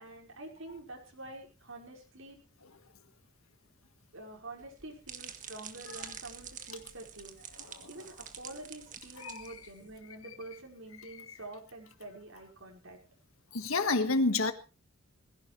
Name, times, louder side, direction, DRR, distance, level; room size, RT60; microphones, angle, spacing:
voice 1, 0.0-2.4 4.1-13.0, right 2 dB, 75° right, -1 dB, 5.5 m, -47 dB
sound 1, 4.6-10.0, right 8 dB, 35° right, 1.7 m, -47 dB
voice 2, 9.2-9.6 11.0-11.4 13.5-14.5, left 3 dB, 85° left, 9 dB, 1.6 m, -30 dB
20.0 x 16.5 x 3.3 m, 0.34 s
head